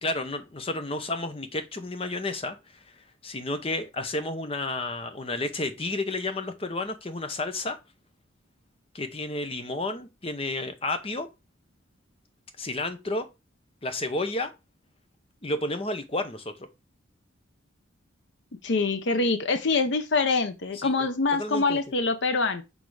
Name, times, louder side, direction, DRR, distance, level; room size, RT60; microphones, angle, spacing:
voice 1, 0.0-2.8 3.2-7.8 8.9-11.3 12.6-13.3 13.8-14.5 15.4-16.7 20.7-20.9 21.4-21.8, left 2 dB, 30° left, 0.8 m, -31 dB
voice 2, 18.6-22.6, left 3 dB, 60° left, 0.6 m, -25 dB
6.3 x 3.5 x 4.7 m
head